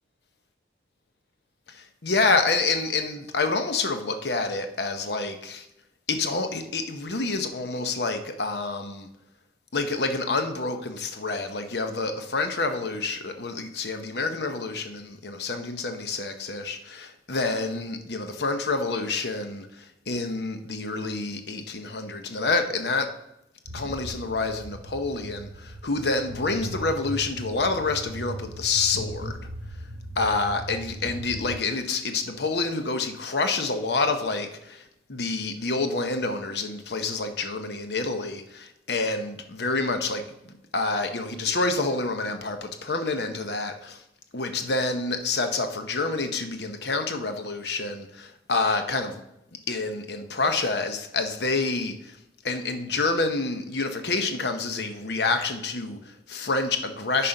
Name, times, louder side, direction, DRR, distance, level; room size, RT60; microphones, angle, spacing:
voice 1, 1.7-5.7 6.1-9.1 9.7-23.1 23.7-29.3 30.2-34.8 35.1-40.2 40.7-44.0 44.3-49.2 49.7-52.2 52.4-57.3, left 3 dB, 65° left, 7 dB, 0.8 m, -28 dB
sound 1, 23.7-31.6, right 1 dB, 85° right, 0.8 m, -38 dB
9.0 x 4.2 x 5.3 m, 0.84 s
head